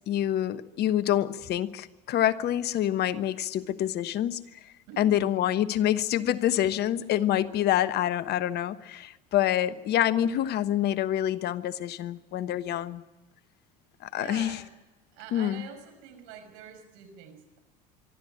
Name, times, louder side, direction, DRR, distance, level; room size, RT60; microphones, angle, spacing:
voice 1, 0.1-4.4 5.0-13.0 14.0-14.6 15.3-15.6, left 11 dB, 55° left, 13 dB, 1.2 m, -26 dB
voice 2, 4.9-5.4 14.2-14.7 15.1-17.6, right 8 dB, 70° right, 7 dB, 5.7 m, -45 dB
23.5 x 13.5 x 9.9 m, 1.1 s
hypercardioid pair, 85°, 21 cm